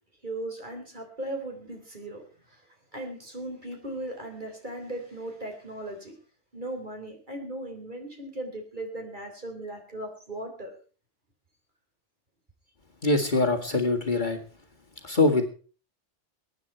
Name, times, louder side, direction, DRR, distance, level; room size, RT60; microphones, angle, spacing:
voice 1, 0.2-2.2 2.5-2.6 2.9-6.1 6.5-10.7, right 1 dB, 40° right, 3 dB, 4.0 m, -37 dB
voice 2, 13.0-14.4 15.0-15.5, left 2 dB, 40° left, 4 dB, 2.1 m, -23 dB
22.5 x 9.7 x 4.5 m, 0.38 s
omnidirectional pair, 1.2 m